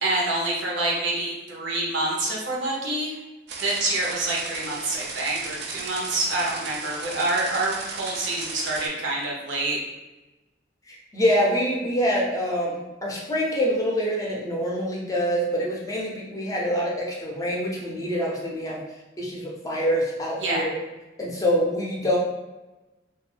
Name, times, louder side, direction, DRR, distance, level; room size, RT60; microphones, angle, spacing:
voice 1, 0.0-3.2 3.6-9.8 20.4-20.6, right 2 dB, 85° right, -3 dB, 0.7 m, -27 dB
sound 1, 3.5-8.9, right 4 dB, 60° right, 0.4 m, -36 dB
voice 2, 10.9-18.8 19.2-20.7 21.2-22.2, equal, 20° left, -3 dB, 0.5 m, -25 dB
2.3 x 2.0 x 3.2 m, 1.1 s
head